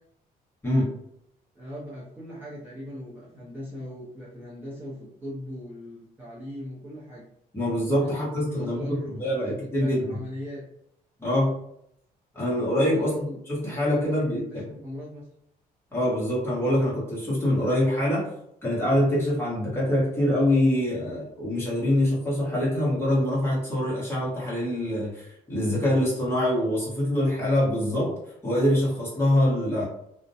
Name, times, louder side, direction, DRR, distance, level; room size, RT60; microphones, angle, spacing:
voice 1, 1.5-7.3 8.0-10.6 12.9-15.3, equal, 15° right, -7 dB, 0.5 m, -39 dB
voice 2, 7.5-10.2 11.2-11.5 12.3-14.6 15.9-18.3 18.6-28.1 28.4-29.8, left 1 dB, 15° left, -6 dB, 1.0 m, -24 dB
2.4 x 2.0 x 2.6 m, 0.74 s
cardioid pair, 170°, 16 cm